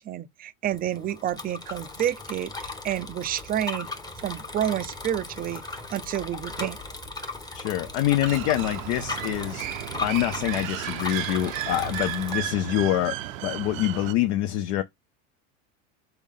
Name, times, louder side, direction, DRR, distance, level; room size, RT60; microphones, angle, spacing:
voice 1, 0.0-5.6 5.9-6.8, right 11 dB, 25° right, 0.4 m, -29 dB
Bicycle, 0.6-12.4, left 3 dB, 10° left, 0.8 m, -37 dB
voice 2, 7.5-9.7 10.0-13.1 13.4-14.8, left 13 dB, 65° left, 0.6 m, -25 dB
sound 1, 8.2-14.1, right 14 dB, 80° right, 0.6 m, -34 dB
4.1 x 3.5 x 3.7 m
supercardioid pair, 105°, 39 cm